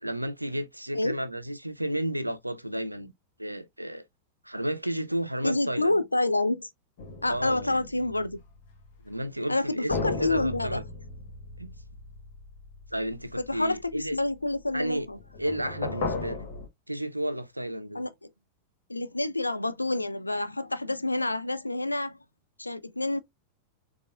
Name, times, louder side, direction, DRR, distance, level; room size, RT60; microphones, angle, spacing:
voice 1, 0.0-3.1 3.4-4.0 4.4-6.0 7.3-7.9 9.0-10.8 11.6-11.7 12.9-14.2 14.7-15.1 15.4-16.4 16.9-18.0, right 1 dB, 85° right, 0.6 m, -32 dB
voice 2, 5.4-6.7 7.2-8.4 9.5-10.8 13.4-15.2 17.9-18.1 18.9-22.2 22.6-23.2, left 2 dB, 85° left, 0.4 m, -28 dB
sound 1, 7.0-8.7 9.9-14.1 15.1-16.7, left 3 dB, 50° left, 1.3 m, -36 dB
6.7 x 2.4 x 2.2 m
figure-of-eight pair, 90°, 0 cm